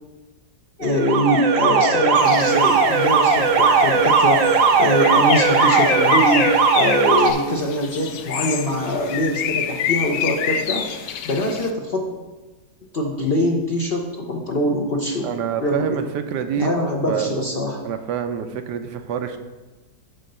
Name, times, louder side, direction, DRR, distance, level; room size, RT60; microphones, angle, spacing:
voice 1, 0.8-12.1 12.9-15.3 15.6-16.0 16.6-17.8, equal, 50° left, 0 dB, 0.7 m, -23 dB
Alarm, 0.8-7.3, right 4 dB, 60° right, 1.0 m, -17 dB
Bird, 2.1-11.7, left 8 dB, 75° left, 1.1 m, -28 dB
voice 2, 15.2-16.7 17.1-17.3 17.8-19.4, right 8 dB, 80° right, 8 dB, 1.2 m, -26 dB
8.5 x 3.8 x 6.6 m, 1.2 s
omnidirectional pair, 1.8 m